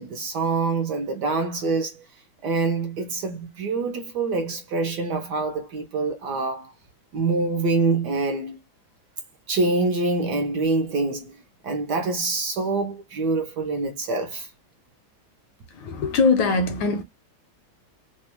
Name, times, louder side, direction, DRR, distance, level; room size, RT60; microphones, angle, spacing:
voice 1, 0.0-2.0 2.4-6.7 7.1-8.6 9.5-11.4 11.6-14.5, right 3 dB, 65° right, 1.1 m, -25 dB
voice 2, 15.7-17.0, left 4 dB, 75° left, 1.2 m, -21 dB
3.4 x 2.2 x 2.9 m
omnidirectional pair, 2.3 m